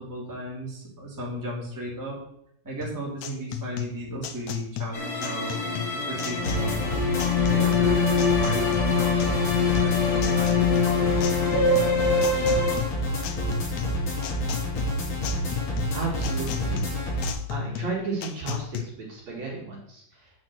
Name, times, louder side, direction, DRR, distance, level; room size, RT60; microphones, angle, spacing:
voice 1, 0.0-2.2 2.6-7.1 7.4-11.5, right 1 dB, 5° right, -4 dB, 2.5 m, -35 dB
sound 1, 2.8-18.8, left 10 dB, 75° left, 1.7 m, -35 dB
sound 2, 4.9-12.8, left 5 dB, 35° left, 1.9 m, -24 dB
sound 3, 6.4-17.3, equal, 60° left, 4.3 m, -28 dB
voice 2, 15.9-16.9 17.5-20.3, right 3 dB, 55° right, -2 dB, 3.0 m, -33 dB
9.0 x 6.1 x 6.5 m, 0.72 s
omnidirectional pair, 4.1 m